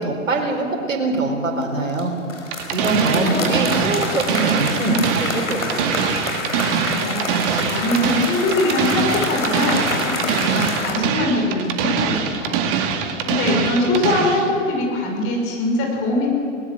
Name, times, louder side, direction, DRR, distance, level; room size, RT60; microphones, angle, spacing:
voice 1, 0.0-2.1 2.7-5.8, right 2 dB, 75° right, 0 dB, 4.4 m, -23 dB
sound 1, 1.6-2.0 2.3-10.9, left 3 dB, 85° left, 4.7 m, -28 dB
sound 2, 2.5-14.5, right 7 dB, 40° right, 2.2 m, -23 dB
voice 2, 2.7-3.7 6.9-7.3 7.7-12.6 13.2-16.3, left 2 dB, 35° left, 0 dB, 6.0 m, -22 dB
20.0 x 20.0 x 7.6 m, 2.6 s
figure-of-eight pair, 110°, 39 cm